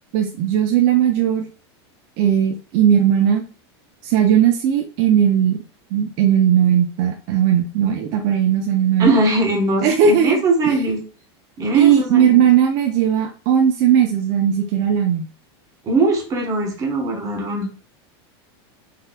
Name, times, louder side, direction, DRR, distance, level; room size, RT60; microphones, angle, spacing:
voice 1, 0.1-1.4 2.2-3.4 4.0-5.6 5.9-9.1 9.8-10.7 11.7-15.3, right 9 dB, 45° right, 3 dB, 0.4 m, -17 dB
voice 2, 9.0-11.0 11.6-12.5 15.8-17.7, right 2 dB, 25° right, 1 dB, 1.0 m, -20 dB
4.0 x 2.6 x 2.2 m, 0.37 s
supercardioid pair, 150°, 14 cm